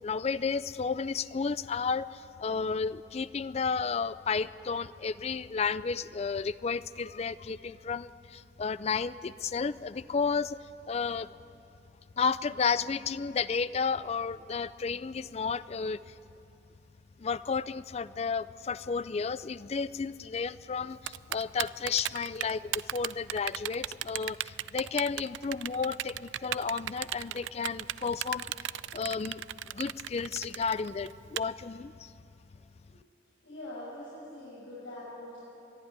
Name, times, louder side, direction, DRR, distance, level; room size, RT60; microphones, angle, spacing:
voice 1, 0.0-10.6 10.9-11.3 12.2-16.1 17.2-28.5 28.9-29.4 29.7-32.1, left 5 dB, 35° left, 17 dB, 0.4 m, -32 dB
Typing, 21.1-31.4, right 12 dB, 75° right, 0.4 m, -35 dB
voice 2, 33.4-35.4, left 1 dB, 85° left, -9 dB, 6.5 m, -43 dB
22.5 x 13.0 x 9.5 m, 2.8 s
head